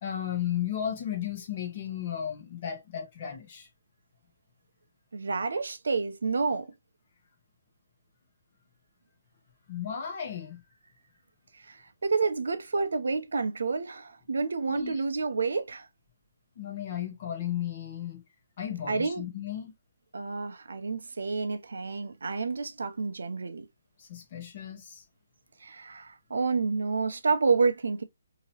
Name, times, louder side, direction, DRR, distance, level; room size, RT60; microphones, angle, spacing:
voice 1, 0.0-3.7 9.7-10.6 14.7-15.0 16.6-18.2 18.6-19.7 24.0-25.0, left 9 dB, 35° left, 0.9 m, -34 dB
voice 2, 5.1-6.7 11.5-15.9 18.9-19.2 20.1-23.7 25.6-28.0, right 4 dB, 80° right, 0.6 m, -29 dB
2.9 x 2.8 x 2.8 m
hypercardioid pair, 170°, 0 cm